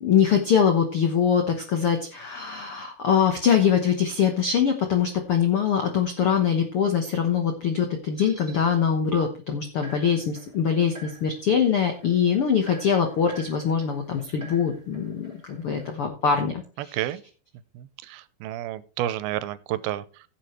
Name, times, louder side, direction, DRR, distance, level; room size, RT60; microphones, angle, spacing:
voice 1, 0.0-17.0, left 7 dB, 80° left, 5 dB, 1.2 m, -23 dB
sound 1, 8.1-8.6 9.1-9.2 9.8-16.1, right 3 dB, 5° right, 3.3 m, -47 dB
voice 2, 16.8-17.2 17.8-20.2, right 13 dB, 90° right, 15 dB, 2.6 m, -31 dB
15.5 x 7.5 x 3.1 m, 0.36 s
omnidirectional pair, 4.3 m